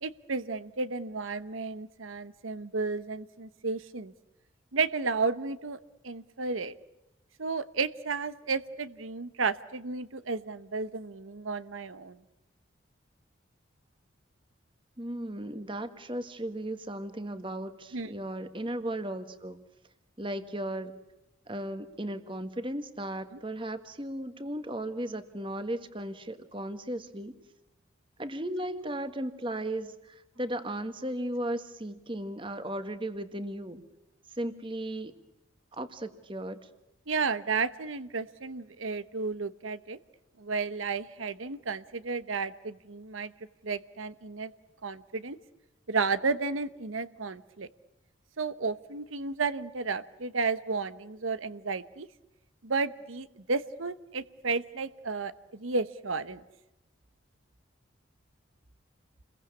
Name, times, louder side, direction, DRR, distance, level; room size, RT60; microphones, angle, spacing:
voice 1, 0.0-4.1 4.7-5.8 6.0-6.7 7.4-12.2 17.9-18.1 37.1-40.0 40.4-43.3 43.6-44.5 44.8-45.4 45.9-47.7 48.4-52.1 52.6-55.3 55.6-56.4, right 4 dB, 85° right, 14 dB, 1.0 m, -32 dB
voice 2, 15.0-19.6 20.2-21.0 21.5-27.4 28.2-33.8 34.3-35.1 35.7-36.6, right 1 dB, 25° right, 10 dB, 1.7 m, -36 dB
29.5 x 22.0 x 8.4 m, 0.95 s
head